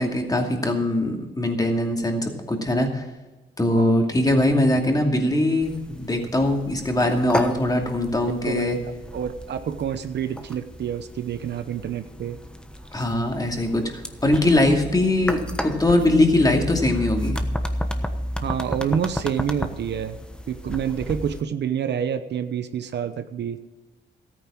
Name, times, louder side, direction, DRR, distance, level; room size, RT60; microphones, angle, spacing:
voice 1, 0.0-3.0 3.6-8.8 12.9-17.4, left 1 dB, 20° left, 2 dB, 2.5 m, -21 dB
voice 2, 3.8-4.2 8.4-12.4 18.4-20.2 20.5-23.6, right 8 dB, 70° right, 9 dB, 0.9 m, -28 dB
sound 1, 5.6-21.4, equal, 5° left, 1.1 m, -33 dB
13.5 x 9.3 x 6.2 m, 1.2 s
cardioid pair, 85°, 18 cm